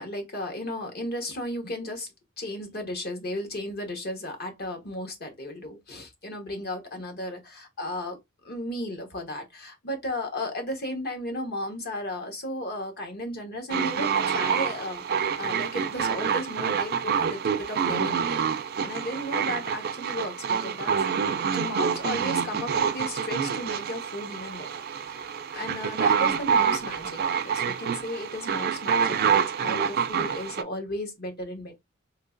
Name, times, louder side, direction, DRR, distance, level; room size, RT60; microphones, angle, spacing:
voice 1, 0.0-2.1 2.4-15.1 15.4-21.0 21.5-24.7 25.0-31.8, left 1 dB, 50° left, 1.1 m, -35 dB
sound 1, 13.7-30.6, right 7 dB, 50° right, 0.4 m, -27 dB
3.7 x 2.8 x 2.5 m
head